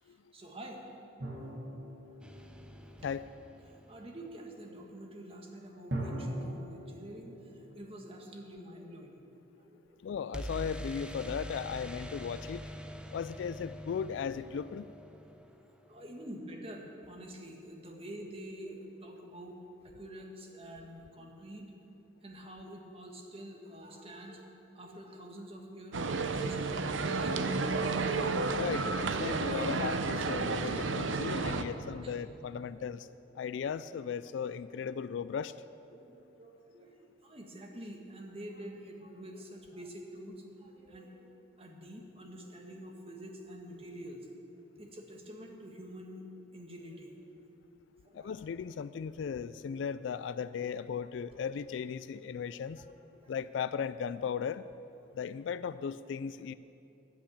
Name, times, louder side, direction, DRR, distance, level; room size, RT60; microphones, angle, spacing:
voice 1, 0.3-0.8 3.7-7.5 7.7-9.2 9.6-10.0 15.9-19.6 19.8-21.8 22.2-27.6 28.1-28.8 30.4-30.7 31.3-31.6 32.0-32.1 35.9-41.3 41.6-44.3 44.8-47.1 48.0-48.4 52.8-52.9 53.2-53.3, right 1 dB, 30° right, 1 dB, 1.5 m, -47 dB
sound 1, 1.2-3.5 5.9-8.8, right 1 dB, 60° right, 1.9 m, -41 dB
sound 2, 2.2-4.2 10.3-16.1, equal, 5° right, 0.5 m, -44 dB
voice 2, 10.0-12.6 13.1-14.9 28.5-33.1 33.3-35.5 48.1-52.8 53.3-54.6 55.2-56.5, left 7 dB, 70° left, 15 dB, 0.3 m, -36 dB
sound 3, 25.9-31.6, right 3 dB, 85° right, 0.7 m, -31 dB
10.0 x 8.6 x 8.6 m, 2.8 s
head